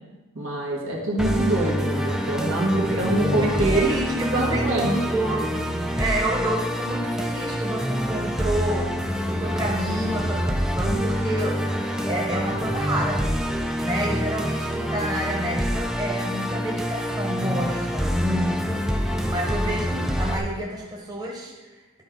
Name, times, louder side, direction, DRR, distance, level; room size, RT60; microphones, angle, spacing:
voice 1, 0.3-3.9 4.3-4.9, right 2 dB, 75° right, -3 dB, 1.8 m, -24 dB
Musical instrument, 1.2-20.4, equal, ahead, 0.4 m, -26 dB
voice 2, 2.9-5.4 6.0-8.9 9.3-13.3 13.8-21.5, right 1 dB, 20° right, -3 dB, 1.1 m, -29 dB
11.5 x 4.6 x 3.9 m, 1.2 s
head